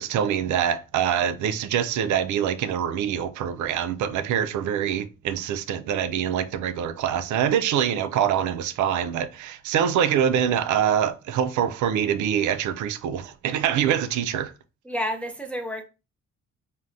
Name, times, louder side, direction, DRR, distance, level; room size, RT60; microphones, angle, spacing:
voice 1, 0.0-14.5, right 9 dB, 75° right, 0.5 m, -25 dB
voice 2, 14.8-15.8, equal, 5° left, 0.5 m, -30 dB
3.3 x 2.2 x 2.6 m
cardioid pair, 90°, 30 cm